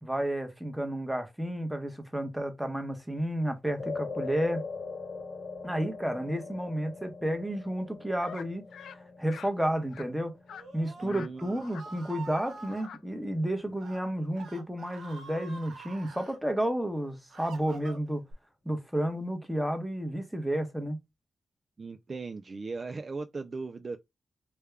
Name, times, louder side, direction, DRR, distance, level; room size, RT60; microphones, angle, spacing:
voice 1, 0.0-4.6 5.6-8.6 9.2-10.3 10.7-18.2 18.6-21.0, right 1 dB, 5° right, 0.9 m, -31 dB
sound 1, 3.8-12.3, left 4 dB, 55° left, 1.1 m, -42 dB
sound 2, 8.2-8.5 8.7-9.0 9.3-9.5 9.9-10.1 10.5-10.7 11.1-11.3 11.6-11.8 12.1-12.4 12.7-13.0, left 7 dB, 85° left, 0.3 m, -46 dB
Screaming, 10.5-12.9 13.7-14.0 14.3-16.4 16.9-18.3, right 4 dB, 85° right, 0.8 m, -46 dB
voice 2, 11.0-11.6 21.8-24.0, right 4 dB, 40° right, 0.3 m, -38 dB
3.3 x 2.3 x 3.3 m
cardioid pair, 80°, 0 cm